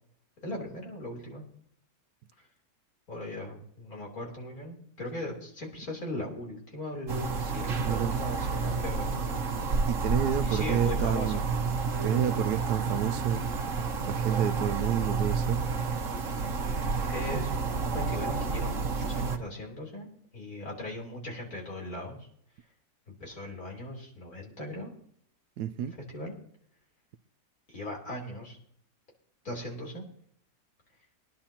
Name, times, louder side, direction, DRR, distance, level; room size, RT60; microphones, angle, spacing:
voice 1, 0.4-1.4 3.1-9.2 10.3-11.4 17.1-20.1 20.3-22.3 23.2-24.9 26.1-26.3 27.7-28.6 29.4-30.0, left 1 dB, 60° left, 4.1 m, -39 dB
sound 1, 7.1-19.4, right 4 dB, 50° right, 1.7 m, -30 dB
voice 2, 7.8-8.2 9.9-11.4 12.0-13.4 14.0-15.6 25.6-26.0, right 10 dB, 75° right, 1.2 m, -30 dB
23.0 x 10.5 x 2.9 m
omnidirectional pair, 1.8 m